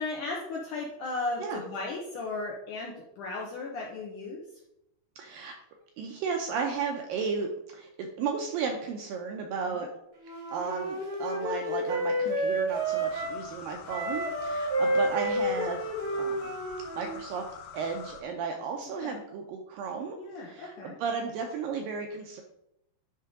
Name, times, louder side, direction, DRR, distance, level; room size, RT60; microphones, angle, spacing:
voice 1, 0.0-4.4 9.6-9.9 19.0-19.2 20.2-21.0, left 3 dB, 75° left, -1 dB, 2.0 m, -36 dB
voice 2, 5.2-5.5 6.0-9.9 10.5-15.9 16.2-16.5 17.0-17.4 17.7-20.2 20.4-22.4, right 5 dB, 80° right, 3 dB, 2.1 m, -34 dB
Wind instrument woodwind instrument, 10.2-13.4 13.9-17.2, right 1 dB, 50° right, 1.9 m, -30 dB
sound 1, 12.7-18.2, left 8 dB, 90° left, 2.9 m, -46 dB
10.5 x 3.7 x 4.8 m, 0.81 s
omnidirectional pair, 4.7 m